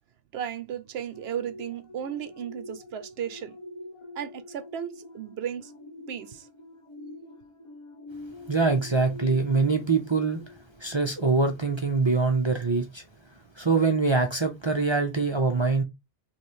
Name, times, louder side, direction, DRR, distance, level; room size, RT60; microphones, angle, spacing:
voice 1, 0.3-3.6 4.1-5.7 6.1-6.5, right 9 dB, 65° right, 0.8 m, -35 dB
sound 1, 1.1-11.0 11.4-11.6, left 2 dB, 25° left, 1.0 m, -45 dB
voice 2, 8.5-10.4 10.8-13.0 13.6-15.8, right 4 dB, 30° right, 0.6 m, -24 dB
3.3 x 3.2 x 4.3 m
omnidirectional pair, 1.2 m